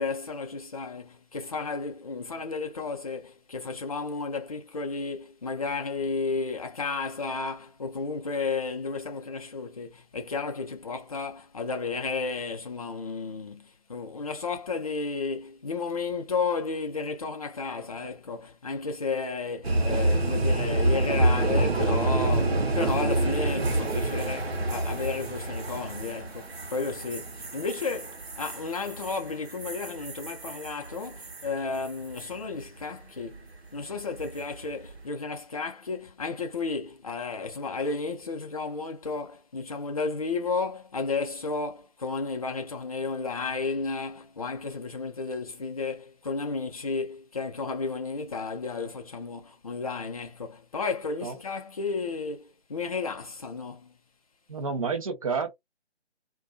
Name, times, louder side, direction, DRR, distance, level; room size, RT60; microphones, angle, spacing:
voice 1, 0.0-53.9, left 4 dB, 35° left, 0.5 m, -33 dB
sound 1, 19.6-31.5 31.8-32.3 34.2-34.5, right 2 dB, 65° right, 0.9 m, -28 dB
voice 2, 54.5-55.6, right 5 dB, 30° right, 0.7 m, -29 dB
2.4 x 2.3 x 2.2 m
figure-of-eight pair, 150°, 34 cm